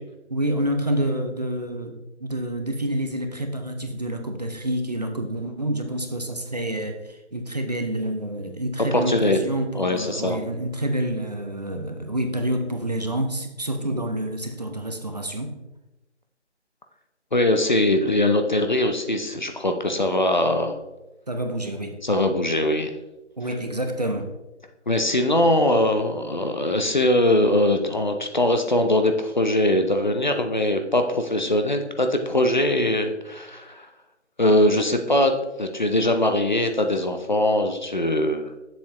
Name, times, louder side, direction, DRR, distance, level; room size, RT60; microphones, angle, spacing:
voice 1, 0.3-15.5 21.3-22.0 23.4-24.3, right 1 dB, 35° right, 5 dB, 0.6 m, -28 dB
voice 2, 8.9-9.4 9.7-10.4 17.3-20.7 22.0-22.9 24.9-33.9 34.4-38.5, left 1 dB, 40° left, 6 dB, 0.6 m, -21 dB
7.4 x 7.0 x 2.9 m, 0.99 s
figure-of-eight pair, 165°, 36 cm